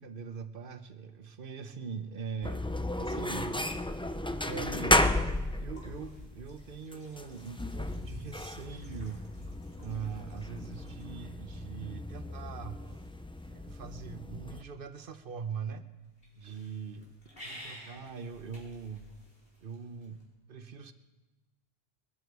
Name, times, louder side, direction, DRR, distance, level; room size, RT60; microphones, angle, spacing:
voice 1, 0.0-3.8 4.4-5.1 5.6-9.2 9.8-13.1 13.5-15.8 16.4-17.1 17.4-19.1 19.6-20.2 20.5-20.9, right 6 dB, 60° right, 10 dB, 1.1 m, -42 dB
sound 1, 2.4-14.6, left 1 dB, 10° left, 0.3 m, -34 dB
sound 2, 4.3-20.2, equal, 65° left, 4.5 m, -56 dB
21.5 x 13.5 x 4.7 m, 1.1 s
omnidirectional pair, 1.1 m